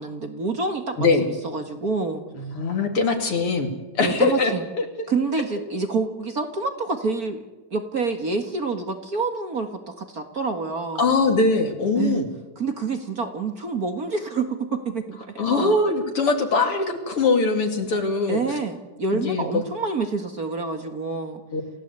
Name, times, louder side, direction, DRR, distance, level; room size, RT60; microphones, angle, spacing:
voice 1, 0.0-1.0 1.2-2.2 4.0-4.7 5.1-7.4 7.7-11.1 11.9-12.2 12.6-15.8 18.3-21.4, right 4 dB, 40° right, 6 dB, 1.5 m, -27 dB
voice 2, 1.0-1.3 2.4-4.8 11.0-12.3 15.4-18.4 19.2-19.6 21.5-21.6, left 3 dB, 45° left, 5 dB, 3.2 m, -22 dB
28.5 x 16.0 x 8.2 m, 1.1 s
omnidirectional pair, 3.5 m